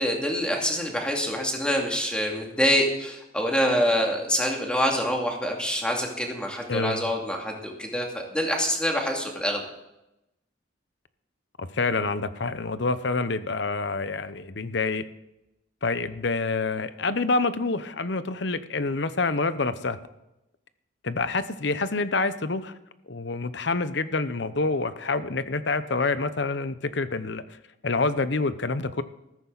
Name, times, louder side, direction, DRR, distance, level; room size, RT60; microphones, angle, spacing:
voice 1, 0.0-8.1 8.3-9.6, equal, 5° left, 0 dB, 2.4 m, -26 dB
voice 2, 6.7-7.1 11.6-15.0 15.8-20.0 21.0-22.7 23.1-27.4 27.8-29.0, left 3 dB, 65° left, 13 dB, 0.9 m, -27 dB
14.0 x 14.0 x 4.1 m, 0.90 s
head